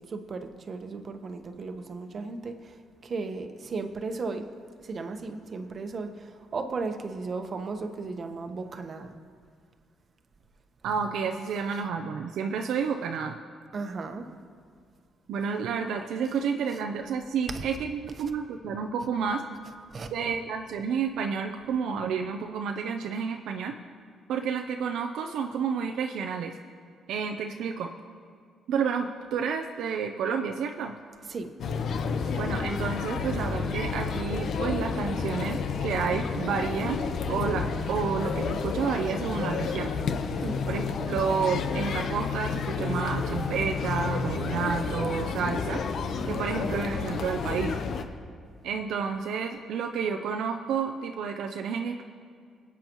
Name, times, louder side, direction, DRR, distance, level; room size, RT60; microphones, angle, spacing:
voice 1, 0.1-4.5 4.8-9.1 13.7-14.3 17.5-17.6 19.9-20.1 31.3-31.5 32.2-32.4 40.4-41.0, right 4 dB, 45° right, 6 dB, 1.1 m, -35 dB
voice 2, 10.8-13.4 15.3-19.4 20.1-23.7 24.3-26.5 27.1-27.9 28.7-30.9 32.3-39.9 40.7-45.8 46.3-47.7 48.6-52.0, right 6 dB, 80° right, 5 dB, 0.6 m, -30 dB
sound 1, 31.6-48.0, left 5 dB, 65° left, 0.9 m, -30 dB
23.5 x 8.4 x 3.1 m, 2.1 s
cardioid pair, 90°, 0 cm